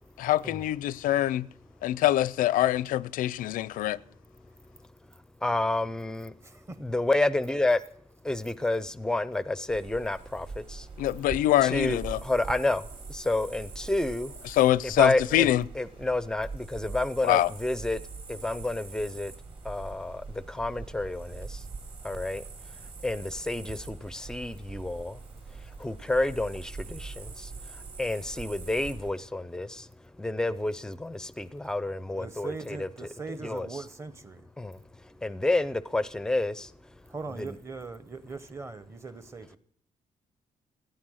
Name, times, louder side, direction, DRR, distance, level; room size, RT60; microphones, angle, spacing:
voice 1, 0.2-1.5 1.8-4.0 11.0-12.2 14.6-15.6 17.3-17.5, left 14 dB, 85° left, 0.5 m, -24 dB
voice 2, 5.4-6.3 6.8-7.8 8.2-10.8 11.6-12.8 13.1-14.3 14.8-18.0 18.3-19.3 19.7-20.2 20.5-21.5 22.0-22.4 23.0-25.1 25.8-27.5 28.0-29.8 30.2-33.8 34.6-34.8 35.2-36.7 37.3-37.6, left 2 dB, 5° left, 0.5 m, -29 dB
sound 1, 9.7-29.1, right 4 dB, 45° right, 2.9 m, -43 dB
voice 3, 32.2-34.4 37.1-39.6, right 4 dB, 20° right, 0.9 m, -40 dB
16.0 x 9.4 x 6.3 m
cardioid pair, 165°, 14 cm